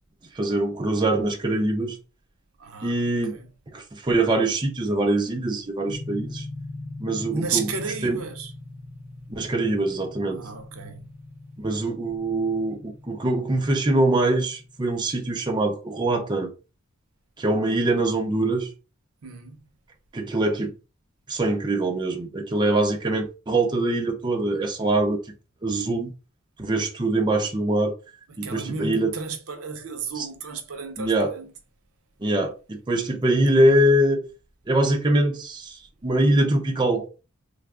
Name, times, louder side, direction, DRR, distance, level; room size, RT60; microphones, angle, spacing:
voice 1, 0.4-2.0 2.8-3.3 3.7-6.5 7.0-7.7 8.0-8.2 9.3-10.4 11.6-16.5 17.4-18.7 20.1-20.7 21.3-25.2 25.6-26.1 26.6-27.9 28.4-29.1 30.1-30.3 31.0-31.3 32.2-34.2 34.7-35.8 36.0-37.1, right 1 dB, 20° right, 0.5 m, -23 dB
voice 2, 2.6-3.5 7.3-8.5 10.3-11.1 19.2-19.6 28.3-31.5, right 5 dB, 80° right, 0.7 m, -33 dB
sound 1, 5.9-15.6, left 2 dB, 85° left, 0.6 m, -41 dB
3.3 x 2.0 x 3.4 m
head